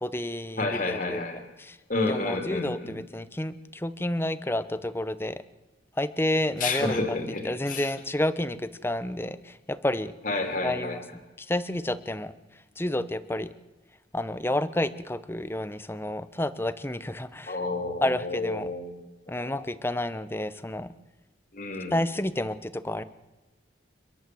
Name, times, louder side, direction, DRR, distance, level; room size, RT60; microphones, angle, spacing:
voice 1, 0.0-1.2 1.6-1.8 2.1-5.4 6.0-7.2 7.4-10.1 10.6-11.0 11.4-12.3 12.8-13.5 14.1-17.6 18.0-18.7 19.3-20.9 21.9-23.0, left 1 dB, 15° left, 13 dB, 0.9 m, -30 dB
voice 2, 0.6-1.4 1.9-3.0 6.6-7.9 10.2-11.0 17.5-19.0 19.4-19.5 21.5-21.9, left 3 dB, 50° left, 4 dB, 2.9 m, -30 dB
30.0 x 11.0 x 7.8 m, 1.2 s
head